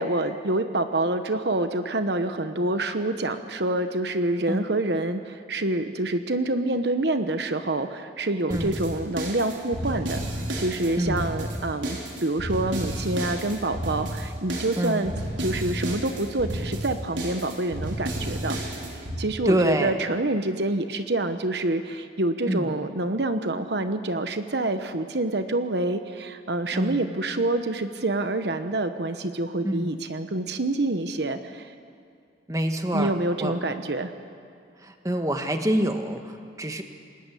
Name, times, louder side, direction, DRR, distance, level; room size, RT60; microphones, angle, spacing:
voice 1, 0.0-10.2 10.6-15.1 15.4-18.6 19.2-31.7 32.9-34.1, right 2 dB, 60° right, 8 dB, 1.1 m, -27 dB
sound 1, 8.5-19.2, right 1 dB, 80° right, 4.7 m, -32 dB
voice 2, 19.4-19.9 22.4-22.7 26.7-27.0 29.6-29.9 32.5-33.1 33.4-33.5 34.8-36.8, right 1 dB, 20° right, 6 dB, 1.4 m, -26 dB
28.5 x 20.5 x 8.4 m, 2.4 s
head